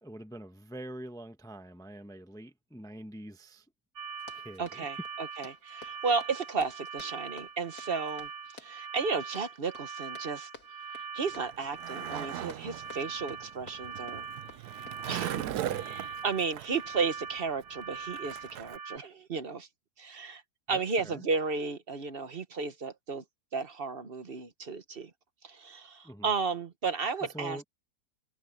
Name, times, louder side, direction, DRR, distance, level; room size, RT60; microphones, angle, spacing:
voice 1, 0.0-3.7 4.3-4.9 15.6-15.9 20.7-21.2 26.0-26.3 27.2-27.6, right 1 dB, 5° left, 0.9 m, -44 dB
sound 1, 4.0-19.0, right 5 dB, 70° right, 1.5 m, -42 dB
Run, 4.1-15.9, left 4 dB, 80° left, 3.0 m, -54 dB
voice 2, 4.6-8.3 8.6-10.5 11.1-14.2 15.1-19.7 20.0-20.4 20.7-23.2 23.5-25.1 25.4-27.6, right 4 dB, 40° right, 1.3 m, -33 dB
Skateboard, 11.3-18.8, right 12 dB, 90° right, 1.2 m, -39 dB
omnidirectional pair, 1.6 m